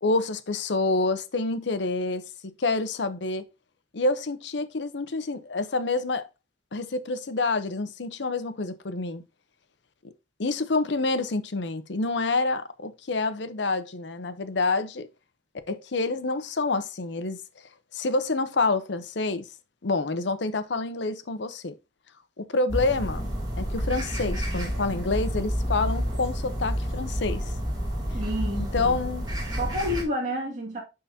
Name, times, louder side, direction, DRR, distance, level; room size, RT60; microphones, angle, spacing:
voice 1, 0.0-2.3 2.6-3.5 3.9-6.3 6.7-9.2 10.0-10.1 10.4-15.1 15.7-17.4 17.9-19.5 19.8-21.8 22.4-23.3 23.6-27.4 28.5-29.3, left 3 dB, 70° left, 0.7 m, -27 dB
sound 1, 22.7-30.0, equal, 20° right, 2.4 m, -29 dB
voice 2, 28.1-29.0 29.6-30.8, equal, 40° right, 2.1 m, -30 dB
11.0 x 3.9 x 2.7 m
head